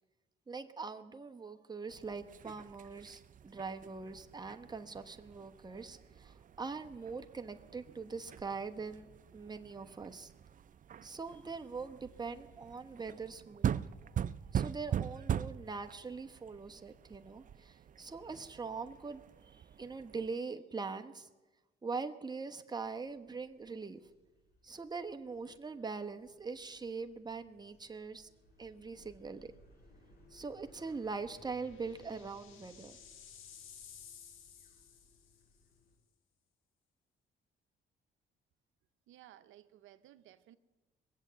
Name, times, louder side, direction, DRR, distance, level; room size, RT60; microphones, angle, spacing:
voice 1, 0.5-10.3 11.0-13.8 14.5-21.3 21.8-24.1 24.6-28.3 28.6-29.5 30.3-33.0, right 4 dB, 20° right, 6 dB, 1.1 m, -42 dB
sound 1, 1.9-20.4, right 9 dB, 40° right, 0.5 m, -42 dB
sound 2, 22.7-36.0, equal, 50° left, 7.1 m, -64 dB
sound 3, 29.0-29.1 29.4-29.5 30.9-35.6, left 8 dB, 85° left, 1.6 m, -56 dB
voice 2, 39.1-40.6, right 13 dB, 85° right, 11 dB, 0.7 m, -58 dB
22.0 x 8.1 x 7.6 m, 1.2 s
cardioid pair, 90°, 20 cm